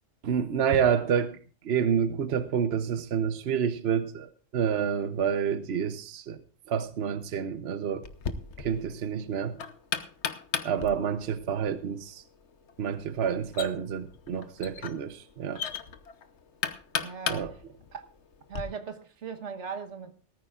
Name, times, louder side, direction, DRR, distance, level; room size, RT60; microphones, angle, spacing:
voice 1, 0.2-6.4 6.7-8.1 8.6-9.6 10.6-12.2 12.8-15.6 17.3-17.5, right 7 dB, 65° right, 1.0 m, -28 dB
Knock, 8.0-18.6, left 7 dB, 80° left, 1.2 m, -37 dB
voice 2, 17.0-17.6 17.9-18.0 18.5-20.1, right 6 dB, 85° right, 1.5 m, -38 dB
18.5 x 14.0 x 2.4 m
omnidirectional pair, 1.2 m